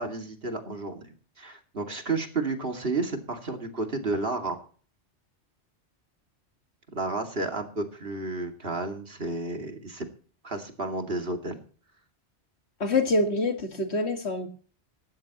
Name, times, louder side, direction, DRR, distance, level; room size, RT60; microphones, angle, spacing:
voice 1, 0.0-4.6 6.9-10.0 10.4-11.6, right 3 dB, 55° right, 4 dB, 2.7 m, -31 dB
voice 2, 12.8-14.5, left 2 dB, 65° left, 6 dB, 2.2 m, -25 dB
17.5 x 13.0 x 3.0 m, 0.41 s
omnidirectional pair, 1.2 m